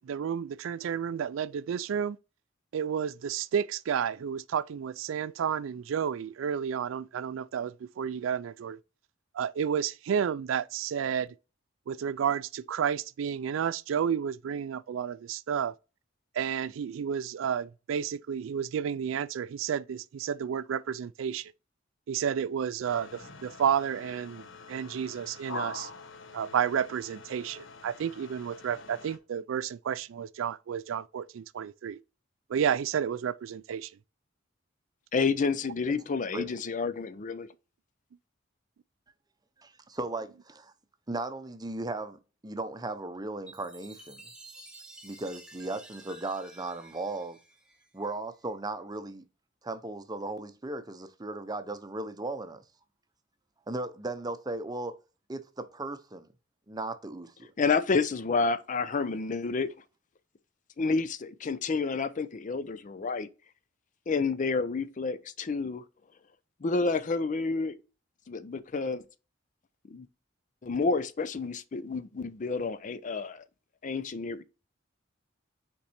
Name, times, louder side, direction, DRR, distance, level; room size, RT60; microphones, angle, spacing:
voice 1, 0.0-2.2 2.7-8.8 9.3-11.3 11.9-15.7 16.4-21.5 22.1-25.9 26.3-32.0 32.5-33.9, right 8 dB, 80° right, 0.3 m, -31 dB
sound 1, 22.8-29.2, left 3 dB, 70° left, 1.0 m, -45 dB
voice 2, 35.1-37.5 57.6-59.7 60.8-63.3 64.1-65.8 66.6-67.8 68.3-69.0 69.9-70.1 70.6-73.4 73.8-74.4, left 4 dB, 40° left, 0.5 m, -29 dB
voice 3, 39.6-40.7 41.1-44.2 45.0-47.4 47.9-49.2 49.6-52.6 53.7-54.9 55.3-56.3 56.7-57.5, right 2 dB, 20° right, 0.7 m, -36 dB
Chime, 43.5-48.2, right 2 dB, 5° right, 1.0 m, -51 dB
5.8 x 4.5 x 4.2 m
head